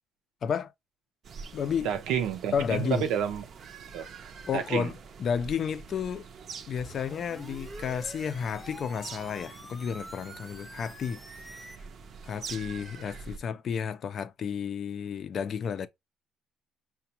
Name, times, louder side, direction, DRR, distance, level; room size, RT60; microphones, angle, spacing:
voice 1, 0.4-0.7 1.5-1.9 2.5-3.1 4.5-6.3 6.7-11.7 12.2-15.9, left 7 dB, 45° left, 0.4 m, -32 dB
sound 1, 1.2-13.4, right 5 dB, 45° right, 0.5 m, -46 dB
voice 2, 1.8-3.4 3.9-4.1 4.5-4.9, right 8 dB, 90° right, 0.6 m, -29 dB
sound 2, 6.8-11.8, equal, ahead, 0.8 m, -46 dB
5.8 x 2.1 x 2.8 m
cardioid pair, 140°, 0 cm